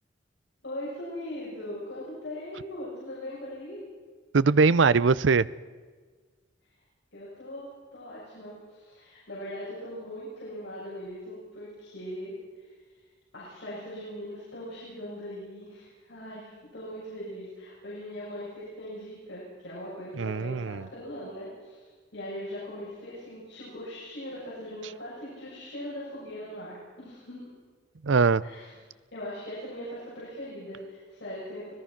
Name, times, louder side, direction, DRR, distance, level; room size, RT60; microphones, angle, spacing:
voice 1, 0.6-3.8 7.1-12.3 13.3-21.9 22.1-27.4 28.4-28.7 29.1-31.7, equal, 65° left, -8 dB, 7.0 m, -40 dB
voice 2, 4.3-5.5 20.2-20.9 28.0-28.4, right 4 dB, 85° right, 18 dB, 0.6 m, -21 dB
25.5 x 18.5 x 5.9 m, 1.5 s
head